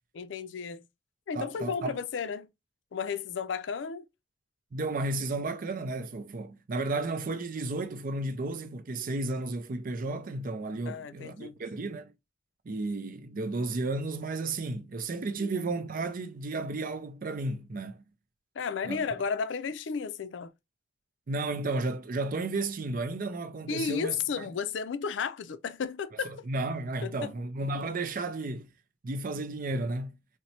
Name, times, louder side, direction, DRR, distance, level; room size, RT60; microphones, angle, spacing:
voice 1, 0.1-0.9 1.3-2.5 2.9-4.0 10.9-11.6 15.4-15.5 18.6-20.5 23.7-26.3 27.0-27.3, left 6 dB, 65° left, 0.4 m, -33 dB
voice 2, 1.3-2.0 4.7-12.1 12.7-18.0 18.8-19.0 21.3-24.1 26.5-28.7 29.0-30.2, right 2 dB, 45° right, 0.5 m, -33 dB
4.1 x 2.1 x 2.7 m
head